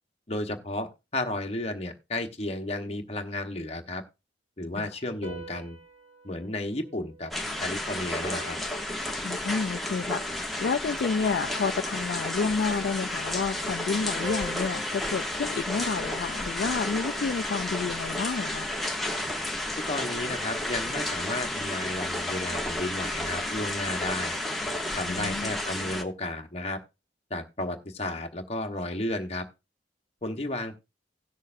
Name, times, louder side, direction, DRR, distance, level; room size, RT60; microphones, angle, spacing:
voice 1, 0.3-4.0 4.6-5.8 6.2-7.3 7.6-8.6 19.9-24.4 24.9-26.8 27.3-29.4 30.2-30.8, left 2 dB, 35° left, 1.1 m, -33 dB
sound 1, 5.2-7.6 8.2-9.7 11.2-12.7 14.2-16.5, right 1 dB, 40° right, 3.3 m, -45 dB
sound 2, 7.3-26.0, left 1 dB, ahead, 0.9 m, -32 dB
voice 2, 9.2-18.7 25.1-25.5, left 5 dB, 60° left, 0.4 m, -30 dB
17.5 x 6.5 x 2.6 m
head